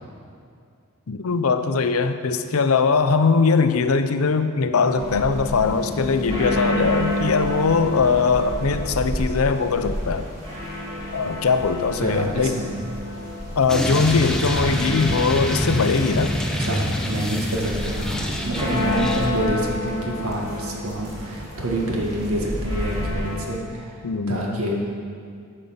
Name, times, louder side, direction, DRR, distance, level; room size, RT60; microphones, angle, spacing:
voice 1, 1.1-10.3 11.1-12.6 13.6-16.3 24.0-24.4, left 4 dB, 80° left, 9 dB, 0.6 m, -21 dB
sound 1, 4.9-23.4, left 1 dB, 25° right, 2.3 m, -29 dB
voice 2, 12.0-12.7 16.5-24.0 24.3-24.7, right 1 dB, 80° right, -1 dB, 1.8 m, -27 dB
sound 2, 13.7-19.3, equal, 5° left, 0.7 m, -26 dB
10.0 x 5.5 x 7.1 m, 2.4 s
head